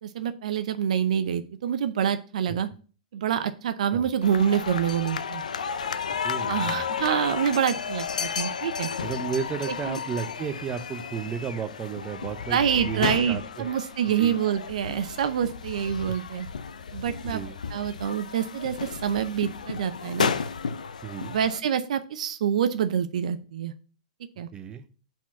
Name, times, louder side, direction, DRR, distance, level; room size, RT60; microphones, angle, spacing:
voice 1, 0.0-2.7 3.1-5.4 6.5-8.9 9.9-10.0 12.5-16.5 16.9-17.4 17.7-20.3 21.3-23.7 24.4-24.5, right 8 dB, 70° right, 11 dB, 0.6 m, -26 dB
sound 1, 4.2-21.6, left 6 dB, 90° left, 0.5 m, -33 dB
voice 2, 6.2-6.9 9.0-13.8 14.2-14.4 16.1-16.2 17.2-17.6 21.0-21.4 24.5-24.8, right 7 dB, 20° right, 9 dB, 0.8 m, -33 dB
5.8 x 4.4 x 5.9 m, 0.38 s
hypercardioid pair, 120°, 4 cm